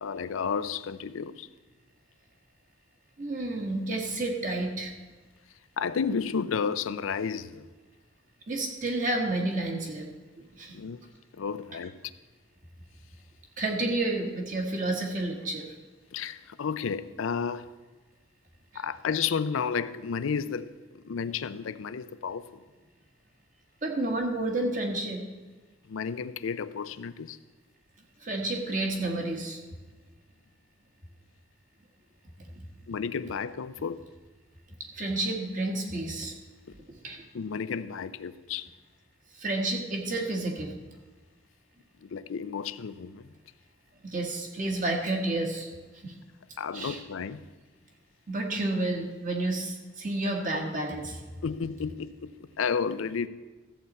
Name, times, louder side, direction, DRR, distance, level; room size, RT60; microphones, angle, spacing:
voice 1, 0.0-1.5 5.8-7.7 10.7-11.0 11.3-12.1 16.1-17.7 18.7-22.6 25.9-27.4 32.9-34.0 36.7-36.8 37.3-38.7 42.0-43.3 46.6-47.5 51.4-53.3, left 6 dB, 85° left, 0.5 m, -32 dB
voice 2, 3.2-4.9 8.5-10.1 10.4-10.8 13.6-15.7 18.7-18.8 23.8-25.2 28.2-29.6 32.5-32.6 34.9-36.3 37.0-37.2 39.3-40.7 44.0-45.7 46.0-46.1 46.7-47.0 48.3-51.2, right 2 dB, 40° right, 1.5 m, -30 dB
13.5 x 8.0 x 4.2 m
head